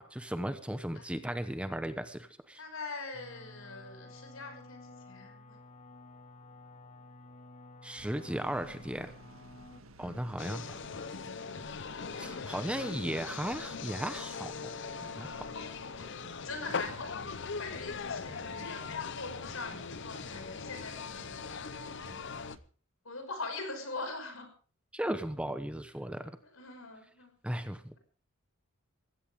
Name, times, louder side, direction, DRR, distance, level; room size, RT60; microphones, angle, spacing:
voice 1, 0.0-2.6 7.8-9.1 10.0-10.7 12.1-14.7 15.0-15.4 24.9-26.3 27.4-28.0, right 1 dB, 5° right, 10 dB, 1.0 m, -36 dB
voice 2, 2.6-5.6 10.0-10.6 12.1-13.4 15.4-16.1 16.4-21.8 22.2-22.5 23.0-24.5 26.4-27.3, left 3 dB, 80° left, 5 dB, 6.0 m, -44 dB
sound 1, 3.1-9.8, left 2 dB, 35° left, 1.2 m, -52 dB
sound 2, 8.0-22.6, right 2 dB, 80° right, 1.7 m, -54 dB
sound 3, 10.4-22.6, left 5 dB, 55° left, 0.7 m, -40 dB
21.0 x 16.0 x 3.7 m, 0.40 s
head